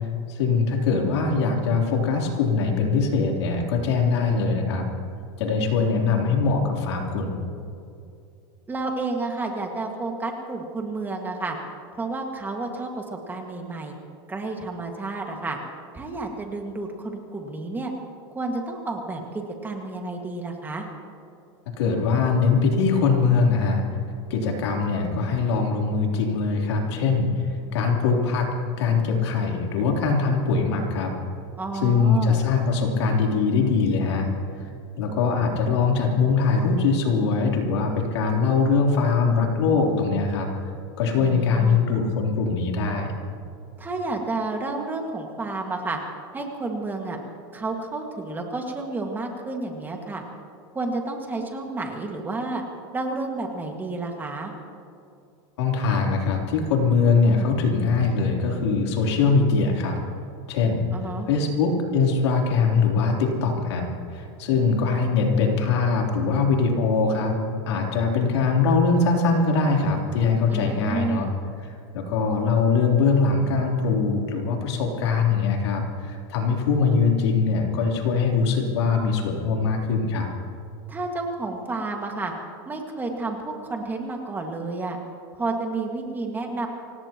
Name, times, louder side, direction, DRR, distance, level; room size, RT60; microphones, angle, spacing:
voice 1, 0.3-4.9 5.4-7.4 21.8-23.9 24.3-27.5 27.7-28.5 28.8-31.1 31.7-34.3 35.0-40.5 41.0-43.1 55.6-60.0 60.5-60.8 61.3-67.4 67.7-71.3 71.9-80.3, left 4 dB, 85° left, 0 dB, 3.5 m, -22 dB
voice 2, 8.7-11.6 11.9-14.0 14.3-15.6 15.9-17.9 18.3-20.9 31.6-32.4 41.2-41.8 43.8-46.0 46.3-47.2 47.5-50.2 50.7-52.6 52.9-54.5 60.9-61.3 70.5-71.3 80.9-82.3 82.7-85.0 85.3-86.7, right 3 dB, 15° right, 2 dB, 1.9 m, -30 dB
26.0 x 18.0 x 3.0 m, 2.5 s
supercardioid pair, 140°, 14 cm